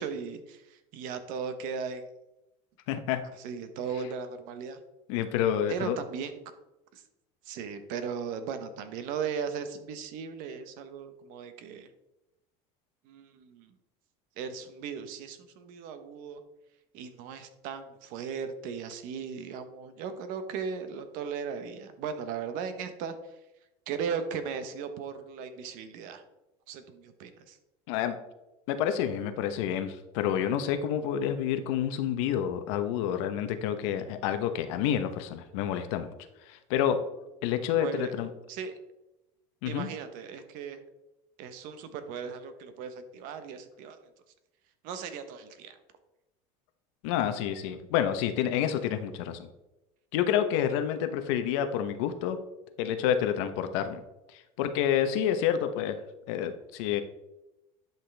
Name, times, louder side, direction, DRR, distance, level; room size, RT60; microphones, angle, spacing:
voice 1, 0.0-2.0 3.4-4.8 5.7-6.3 6.9-7.0 7.4-11.9 13.0-13.7 14.4-16.4 16.9-23.2 23.9-26.2 26.7-27.6 37.8-38.1 38.5-38.7 39.6-40.8 41.4-44.0 44.8-45.8, right 6 dB, 65° right, 9 dB, 1.1 m, -37 dB
voice 2, 2.9-3.2 5.1-6.0 27.9-28.2 28.7-36.1 36.5-37.0 37.4-38.3 39.6-39.9 47.0-49.5 50.1-52.4 52.8-54.0 54.3-56.0 56.3-57.0, left 9 dB, 80° left, 8 dB, 0.9 m, -28 dB
10.5 x 5.9 x 3.4 m, 0.94 s
cardioid pair, 145°, 15 cm